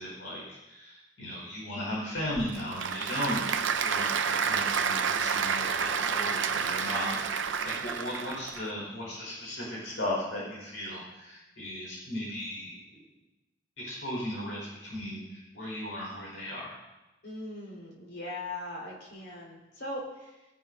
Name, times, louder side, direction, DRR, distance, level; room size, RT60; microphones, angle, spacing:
voice 1, 0.0-13.0 13.8-16.8, left 1 dB, 80° left, -4 dB, 5.0 m, -36 dB
Applause / Crowd, 2.2-8.6, right 6 dB, 80° right, 0.7 m, -29 dB
voice 2, 17.2-20.5, left 1 dB, 65° left, -3 dB, 4.3 m, -40 dB
18.5 x 11.0 x 2.7 m, 1.0 s
head